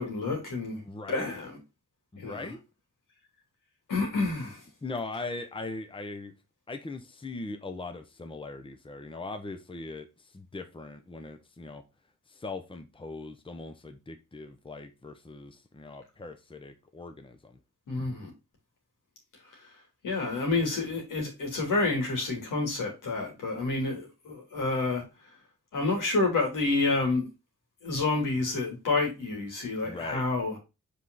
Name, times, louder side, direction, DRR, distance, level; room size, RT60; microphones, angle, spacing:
voice 1, 0.0-0.8 1.1-1.6 2.2-2.5 3.9-4.6 17.9-18.3 20.0-25.0 25.7-27.3 27.8-30.6, left 3 dB, 85° left, 3.3 m, -29 dB
voice 2, 0.8-1.3 2.1-2.6 4.8-6.3 6.7-10.1 10.3-11.8 12.3-17.6 29.8-30.2, left 3 dB, 15° left, 1.0 m, -40 dB
5.4 x 5.0 x 4.0 m
cardioid pair, 85°, 31 cm